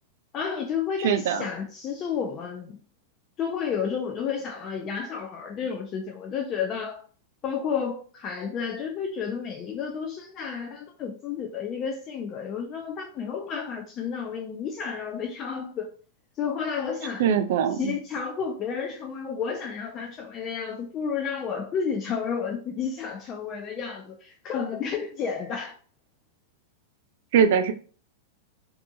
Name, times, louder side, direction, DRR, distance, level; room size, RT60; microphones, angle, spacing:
voice 1, 0.3-2.8 3.4-7.0 7.4-15.9 16.4-17.3 17.7-25.7, left 6 dB, 30° left, 0.3 m, -31 dB
voice 2, 1.0-1.4 17.2-17.8 27.3-27.7, right 7 dB, 65° right, 0.3 m, -21 dB
2.6 x 2.3 x 2.5 m
supercardioid pair, 140°, 0 cm